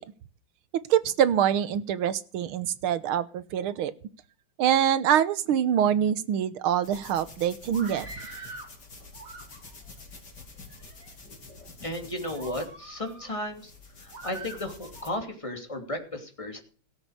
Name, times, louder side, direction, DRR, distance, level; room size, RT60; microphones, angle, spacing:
voice 1, 0.9-3.9 4.6-8.1, right 9 dB, 85° right, 15 dB, 1.8 m, -25 dB
sound 1, 6.8-15.1, left 3 dB, 50° left, 4.1 m, -48 dB
Screaming, 7.6-8.7 9.1-9.9 10.6-11.1 11.7-11.8 12.3-13.3 14.1-15.1, right 2 dB, 40° right, 2.9 m, -44 dB
voice 2, 11.8-13.7 14.0-16.6, left 1 dB, 15° left, 4 dB, 3.0 m, -34 dB
17.0 x 8.2 x 6.6 m, 0.41 s
omnidirectional pair, 2.3 m